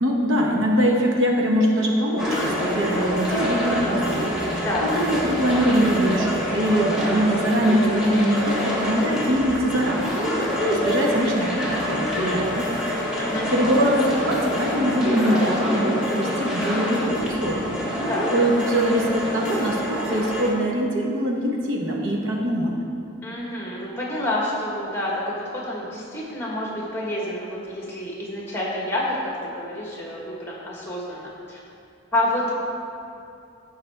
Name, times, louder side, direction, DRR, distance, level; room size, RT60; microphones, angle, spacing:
voice 1, 0.0-4.4 4.9-10.2 10.6-12.8 13.5-17.8 18.3-22.8, equal, 85° right, -1 dB, 1.4 m, -23 dB
sound 1, 2.2-20.5, equal, 5° right, 1.5 m, -26 dB
voice 2, 23.2-31.6 32.1-32.5, left 1 dB, 15° left, -4 dB, 1.6 m, -28 dB
15.0 x 5.5 x 3.5 m, 2.6 s
head